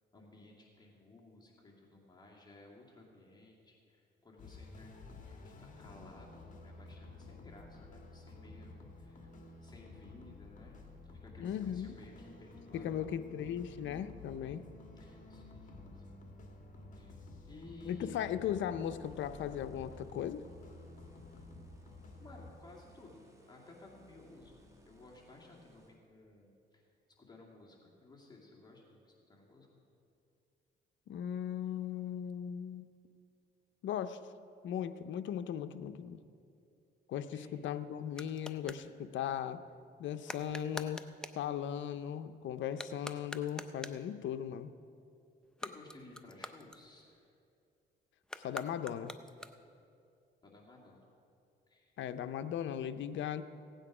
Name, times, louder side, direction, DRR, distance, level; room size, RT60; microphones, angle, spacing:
voice 1, 0.1-5.0 5.3-13.2 15.0-16.2 17.0-17.2 17.5-18.2 22.2-24.6 24.9-26.8 27.2-29.7 37.3-37.5 45.6-47.3 50.4-51.1 51.7-52.0, left 2 dB, 20° left, -3 dB, 2.3 m, -56 dB
sound 1, 4.4-22.5, left 3 dB, 40° left, 1.8 m, -52 dB
voice 2, 11.4-12.0 12.7-14.6 17.9-20.4 31.1-32.9 33.8-34.2 34.6-36.2 37.1-39.6 40.0-41.0 41.3-44.7 48.4-49.1 52.0-53.4, left 9 dB, 70° left, 10 dB, 0.6 m, -38 dB
sound 2, 18.8-26.0, equal, 15° right, 1.9 m, -62 dB
sound 3, 37.2-38.9 40.2-41.5 42.7-44.1 45.4-47.3 48.2-49.8, left 1 dB, 5° left, 0.5 m, -47 dB
16.5 x 9.1 x 4.9 m, 2.5 s
cardioid pair, 90°, 20 cm